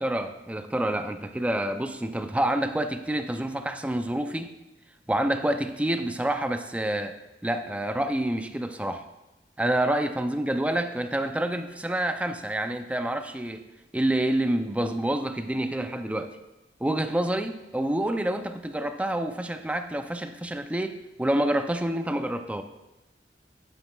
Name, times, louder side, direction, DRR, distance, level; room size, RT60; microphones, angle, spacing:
voice 1, 0.0-4.6 5.1-7.2 7.4-9.0 9.6-13.6 13.9-16.4 16.8-22.6, right 1 dB, 10° right, 8 dB, 0.4 m, -28 dB
9.9 x 9.3 x 2.3 m, 0.98 s
head